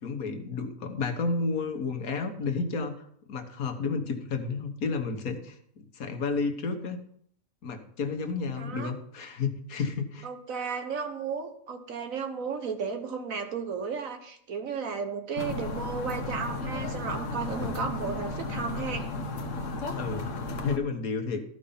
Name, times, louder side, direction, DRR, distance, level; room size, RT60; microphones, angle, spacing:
voice 1, 0.0-2.9 3.3-7.0 7.6-10.3 19.9-20.3 20.6-21.4, left 4 dB, 80° left, 6 dB, 1.6 m, -31 dB
voice 2, 8.6-8.9 10.2-19.1, right 5 dB, 70° right, 6 dB, 1.6 m, -34 dB
sound 1, 15.4-20.8, left 3 dB, 60° left, 1.3 m, -34 dB
13.5 x 5.3 x 5.6 m, 0.66 s
omnidirectional pair, 1.5 m